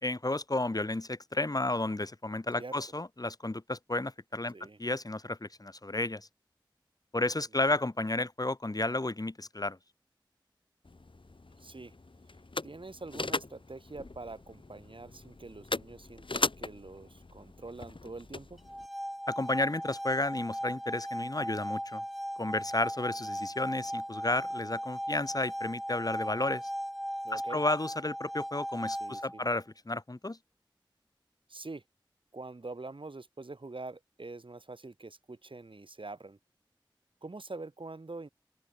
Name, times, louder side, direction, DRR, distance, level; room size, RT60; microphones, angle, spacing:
voice 1, 0.0-4.5 4.8-6.3 7.1-9.8 19.3-22.0 22.4-26.6 27.3-30.4, left 2 dB, 45° left, 2.2 m, -32 dB
sound 1, 10.8-18.9, left 3 dB, 75° left, 3.5 m, -39 dB
voice 2, 11.6-11.9 12.6-18.6 27.2-27.6 28.9-29.4 31.5-31.8 32.3-36.4 37.2-38.3, right 3 dB, 80° right, 3.3 m, -45 dB
sound 2, 18.6-29.6, equal, ahead, 3.4 m, -37 dB
open air
wide cardioid pair, 50°, 9 cm